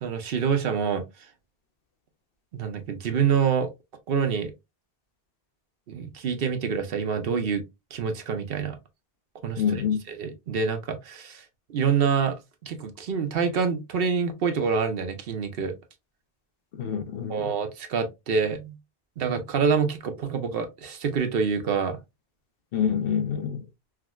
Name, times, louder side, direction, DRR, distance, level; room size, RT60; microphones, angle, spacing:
voice 1, 0.0-1.0 2.5-3.7 4.1-4.5 5.9-7.6 7.9-8.8 9.4-9.8 10.1-11.4 11.7-12.4 12.6-15.7 17.3-18.7 19.2-22.0, right 6 dB, 65° right, 0.9 m, -26 dB
voice 2, 9.6-10.0 16.7-17.5 22.7-23.6, left 8 dB, 65° left, 0.7 m, -26 dB
4.6 x 2.1 x 2.2 m
omnidirectional pair, 1.1 m